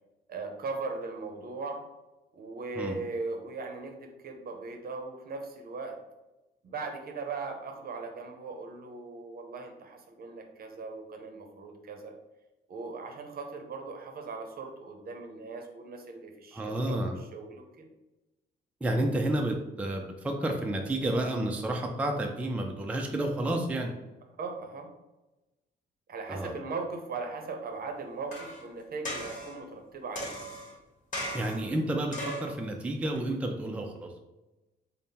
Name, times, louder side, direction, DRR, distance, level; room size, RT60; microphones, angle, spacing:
voice 1, 0.3-1.8 2.3-6.0 6.6-12.1 12.7-17.9 24.4-24.9 26.1-30.3, right 4 dB, 50° right, 3 dB, 0.7 m, -39 dB
voice 2, 16.5-17.2 18.8-23.9 26.3-26.5 31.3-34.1, right 1 dB, 5° right, 2 dB, 0.4 m, -30 dB
sound 1, 28.3-28.6 29.1-29.6 30.2-30.7 31.1-31.7 32.1-32.6 33.2-33.3, equal, 40° left, 1.2 m, -37 dB
3.5 x 2.1 x 4.1 m, 1.0 s
cardioid pair, 90°, 20 cm